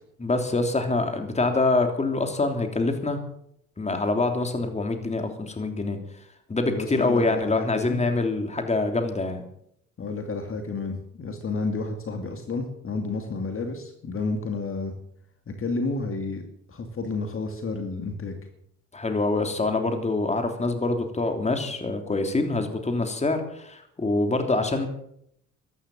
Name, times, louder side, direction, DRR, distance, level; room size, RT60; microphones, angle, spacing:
voice 1, 0.2-3.2 3.8-6.0 6.5-9.4 18.9-24.9, left 2 dB, 20° left, 6 dB, 3.1 m, -25 dB
voice 2, 6.6-8.0 10.0-14.9 15.5-16.4 16.7-18.4, left 3 dB, 45° left, 5 dB, 2.5 m, -31 dB
14.5 x 11.5 x 7.7 m, 0.71 s
cardioid pair, 90°, 30 cm